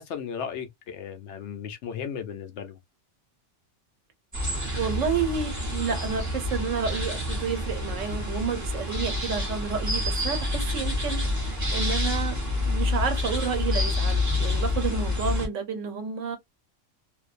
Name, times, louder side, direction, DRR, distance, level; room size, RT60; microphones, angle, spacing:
voice 1, 0.0-2.8, left 7 dB, 70° left, 0.9 m, -35 dB
sound 1, 4.3-15.5, left 2 dB, 15° right, 0.8 m, -28 dB
voice 2, 4.8-12.4 12.7-16.4, right 6 dB, 85° right, 1.2 m, -30 dB
2.5 x 2.1 x 2.4 m
omnidirectional pair, 1.3 m